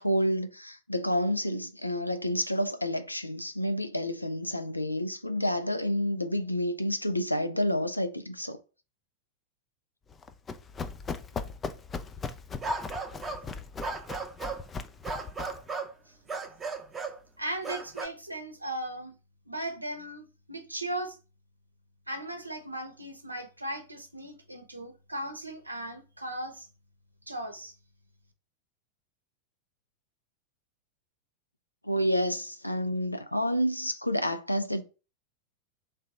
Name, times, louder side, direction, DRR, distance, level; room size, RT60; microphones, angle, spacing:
voice 1, 0.0-8.6 31.8-34.8, equal, 85° left, 0.4 m, -29 dB
Run, 10.1-15.7, left 5 dB, 20° left, 0.4 m, -39 dB
sound 1, 12.6-13.5 13.8-14.6 15.0-15.9 16.3-17.2 17.6-18.1, right 3 dB, 15° right, 0.7 m, -35 dB
voice 2, 17.4-19.1 19.5-21.2 22.1-26.7 27.3-27.7, right 1 dB, 85° right, 0.7 m, -37 dB
3.3 x 2.8 x 4.2 m
figure-of-eight pair, 90°, 0 cm